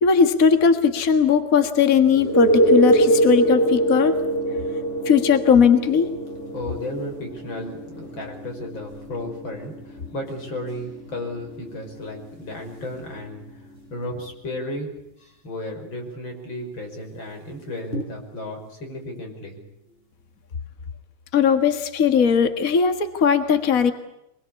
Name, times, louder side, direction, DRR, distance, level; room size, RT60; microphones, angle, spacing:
voice 1, 0.0-4.2 5.0-6.1 21.3-23.9, left 6 dB, 55° left, 7 dB, 0.9 m, -18 dB
sound 1, 2.1-13.7 17.9-18.0, right 1 dB, 15° left, 5.4 m, -24 dB
voice 2, 6.5-19.6, left 1 dB, 30° left, 2 dB, 5.9 m, -34 dB
25.0 x 22.0 x 8.4 m, 0.83 s
omnidirectional pair, 4.1 m